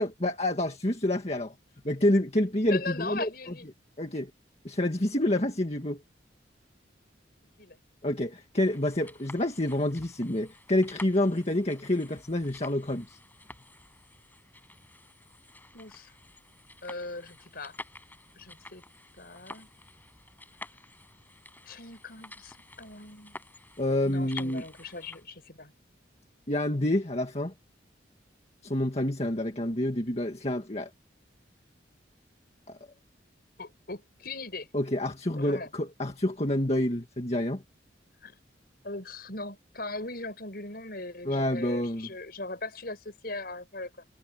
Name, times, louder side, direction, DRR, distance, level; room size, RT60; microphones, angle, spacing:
voice 1, 0.0-1.5 1.8-3.3 4.0-4.3 4.6-6.0 8.0-13.2 23.8-24.6 26.5-27.5 28.6-30.9 32.7-32.8 34.7-37.6 41.3-42.1, left 1 dB, 35° left, 2.0 m, -28 dB
voice 2, 2.6-3.7 7.6-7.8 15.7-16.1 16.8-17.8 18.4-18.8 19.2-19.7 21.6-23.4 24.0-25.7 33.6-34.7 35.4-35.7 38.2-38.4 38.8-44.1, left 3 dB, 55° left, 6.2 m, -39 dB
sound 1, 8.6-25.2, left 2 dB, 10° left, 7.5 m, -50 dB
head